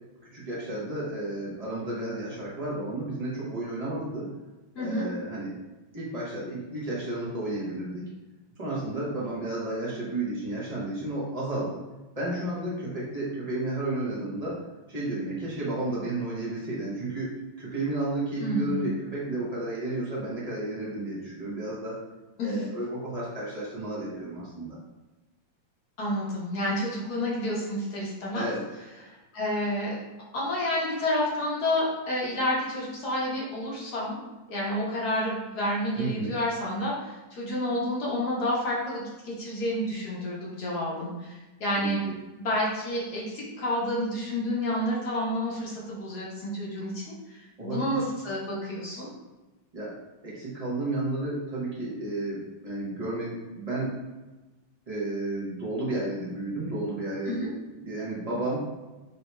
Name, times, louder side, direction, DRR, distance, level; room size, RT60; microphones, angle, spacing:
voice 1, 0.3-4.3 4.7-5.5 5.9-8.1 8.6-11.8 12.1-14.6 14.9-22.0 22.4-24.8 28.3-28.6 36.0-36.4 41.7-42.0 47.6-47.9 49.7-49.9 50.2-54.0 54.9-57.4 57.8-58.7, right 2 dB, 35° right, -7 dB, 0.6 m, -32 dB
voice 2, 4.7-5.1 18.4-18.9 22.4-22.6 26.0-28.5 29.0-30.0 30.3-34.2 34.5-42.0 42.4-49.1 57.2-57.5, left 1 dB, 60° left, -5 dB, 1.4 m, -29 dB
5.2 x 2.7 x 2.2 m, 1.1 s
omnidirectional pair, 2.1 m